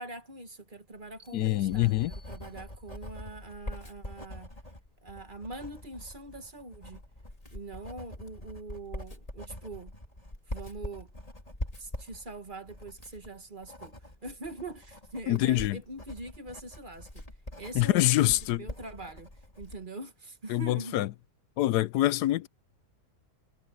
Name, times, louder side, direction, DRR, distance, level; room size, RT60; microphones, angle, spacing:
voice 1, 0.0-4.5 5.0-7.0 7.5-9.9 10.5-11.1 11.8-17.3 17.6-21.1, right 2 dB, 30° right, 1.6 m, -43 dB
Writing, 1.1-19.9, left 1 dB, 20° left, 3.4 m, -44 dB
sound 1, 1.2-3.1, equal, 60° right, 3.3 m, -62 dB
voice 2, 1.3-2.1 15.3-15.8 17.7-18.6 20.5-21.1 21.6-22.5, left 15 dB, 85° left, 1.1 m, -25 dB
omnidirectional pair, 1.7 m